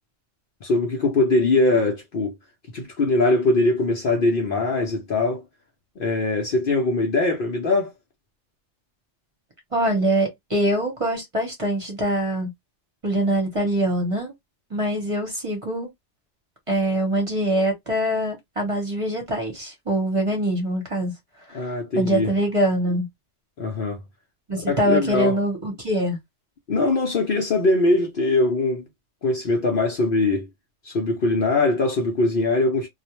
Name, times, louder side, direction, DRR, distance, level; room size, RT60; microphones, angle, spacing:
voice 1, 0.6-2.3 2.7-5.4 6.0-7.9 21.5-22.3 23.6-24.0 24.6-25.4 26.7-28.8 29.2-30.5 30.8-32.9, left 2 dB, 55° left, 0.7 m, -21 dB
voice 2, 9.7-12.5 13.0-14.3 14.7-15.9 16.7-21.1 21.5-23.1 24.5-26.2, right 1 dB, 30° right, 0.8 m, -24 dB
2.4 x 2.1 x 2.9 m
omnidirectional pair, 1.3 m